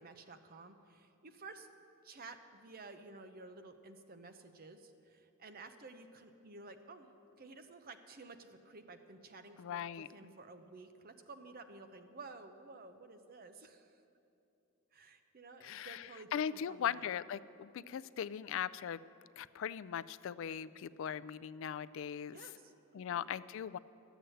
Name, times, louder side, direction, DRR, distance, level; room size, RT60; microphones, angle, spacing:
voice 1, 0.0-1.7 2.0-7.1 7.4-14.0 14.9-17.1 17.7-18.0 22.3-23.3, right 3 dB, 45° right, 8 dB, 0.7 m, -53 dB
voice 2, 9.6-10.1 15.6-19.0 19.4-22.4 22.9-23.8, left 8 dB, 65° left, 16 dB, 0.3 m, -39 dB
12.0 x 8.1 x 7.8 m, 2.8 s
head